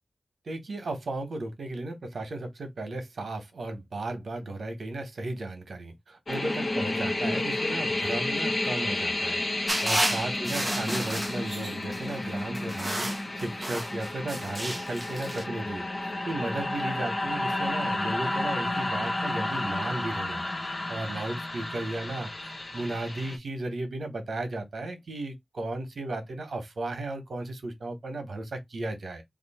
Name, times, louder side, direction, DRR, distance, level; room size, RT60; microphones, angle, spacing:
voice 1, 0.4-9.4 9.8-29.2, right 2 dB, 75° right, 1.1 m, -35 dB
sound 1, 6.3-23.4, left 2 dB, 40° left, 0.8 m, -31 dB
sound 2, 9.7-12.0 12.5-15.4, right 1 dB, 15° right, 0.8 m, -32 dB
2.9 x 2.5 x 4.2 m
wide cardioid pair, 100°, 0 cm